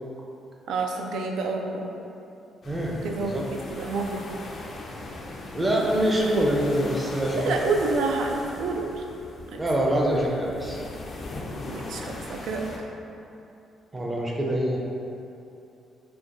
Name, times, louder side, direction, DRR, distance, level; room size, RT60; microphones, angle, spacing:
voice 1, 0.7-1.9 3.0-4.3 7.3-9.0 9.5-9.6 11.7-12.7, right 3 dB, 75° right, 2 dB, 0.3 m, -28 dB
sound 1, 2.6-12.8, left 2 dB, 50° left, 0.4 m, -39 dB
voice 2, 2.6-3.4 5.5-7.5 9.6-10.8 13.9-14.8, right 1 dB, 20° right, -2 dB, 0.6 m, -25 dB
4.3 x 2.2 x 2.5 m, 2.8 s
cardioid pair, 90°, 0 cm